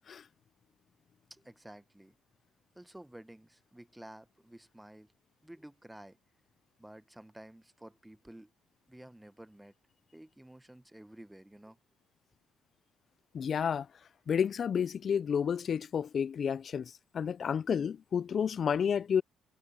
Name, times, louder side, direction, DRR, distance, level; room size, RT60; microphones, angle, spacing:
voice 1, 1.3-2.2 2.7-5.1 5.4-6.2 6.8-8.5 8.9-9.7 10.1-11.8, right 1 dB, 5° right, 0.7 m, -52 dB
voice 2, 13.3-13.9 14.3-19.2, left 7 dB, 50° left, 0.3 m, -31 dB
cardioid pair, 90°, 0 cm